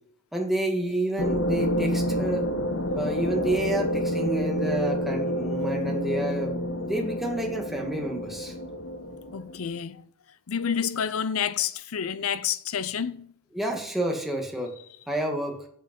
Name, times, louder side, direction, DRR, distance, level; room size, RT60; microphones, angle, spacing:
voice 1, 0.3-2.5 3.0-8.5 13.5-14.7 15.1-15.6, right 1 dB, ahead, 2.1 m, -29 dB
sound 1, 1.2-9.8, equal, 65° left, 1.1 m, -28 dB
voice 2, 9.3-10.0 10.5-13.3, left 7 dB, 80° left, 0.6 m, -29 dB
9.0 x 8.5 x 5.4 m
head